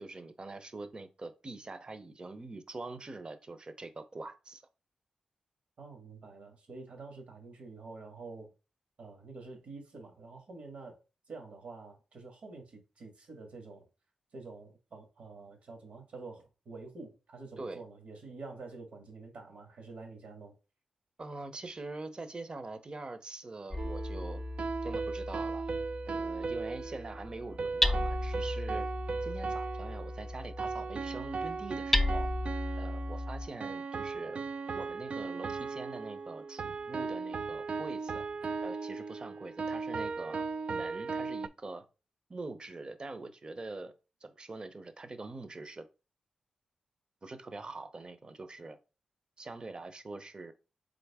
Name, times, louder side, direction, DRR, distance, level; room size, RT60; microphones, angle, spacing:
voice 1, 0.0-4.6 17.6-17.8 21.2-24.4 24.8-25.6 26.0-28.9 29.2-32.3 32.8-34.4 34.7-38.2 38.6-41.8 42.3-43.9 44.2-45.9 47.2-48.8 49.4-50.5, right 3 dB, 40° right, 0.8 m, -44 dB
voice 2, 5.8-8.5 9.0-11.0 11.3-13.9 14.3-20.5, right 3 dB, 70° right, 1.7 m, -48 dB
Hammer, 23.7-33.5, left 1 dB, 10° left, 0.6 m, -35 dB
sound 1, 23.8-41.5, right 4 dB, 55° right, 0.3 m, -37 dB
3.8 x 3.8 x 3.5 m
cardioid pair, 50°, 2 cm